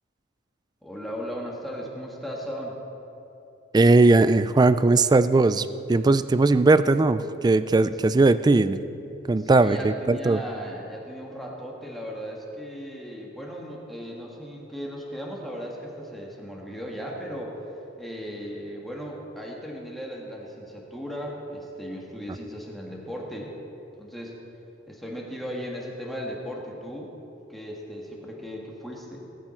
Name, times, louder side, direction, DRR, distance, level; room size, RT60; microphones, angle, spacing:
voice 1, 0.8-2.8 9.4-17.6 18.0-23.5 24.0-24.3 24.9-27.1 27.5-29.2, equal, ahead, -2 dB, 1.7 m, -36 dB
voice 2, 3.7-8.8 9.3-10.4, right 3 dB, 20° right, 13 dB, 0.3 m, -19 dB
19.0 x 9.2 x 4.5 m, 2.9 s
head